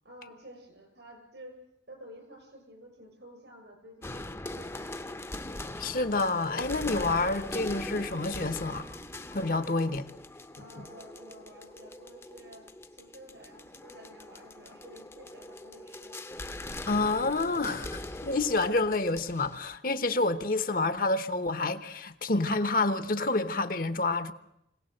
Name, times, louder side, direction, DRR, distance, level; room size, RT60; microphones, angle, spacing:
voice 1, 0.0-1.6 1.9-5.0 10.5-16.2, equal, 80° right, 6.8 m, -51 dB
sound 1, 4.0-19.7, left 1 dB, 15° left, 0.8 m, -41 dB
voice 2, 5.8-8.9 9.3-10.1 16.9-24.3, left 2 dB, 50° left, 1.0 m, -28 dB
25.0 x 18.0 x 7.9 m
head